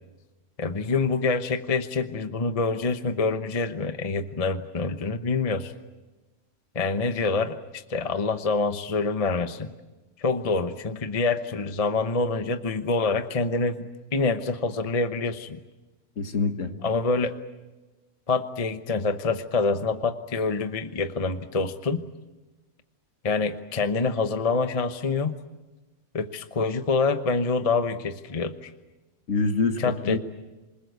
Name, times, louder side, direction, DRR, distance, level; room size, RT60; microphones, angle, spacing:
voice 1, 0.6-5.7 6.7-9.7 10.2-15.6 16.8-17.3 18.3-22.0 23.2-25.3 26.1-28.7 29.8-30.2, left 4 dB, 30° left, 9 dB, 0.9 m, -26 dB
voice 2, 16.2-16.7 29.3-30.2, left 4 dB, 60° left, 8 dB, 1.9 m, -25 dB
28.0 x 20.5 x 8.1 m, 1.1 s
omnidirectional pair, 1.6 m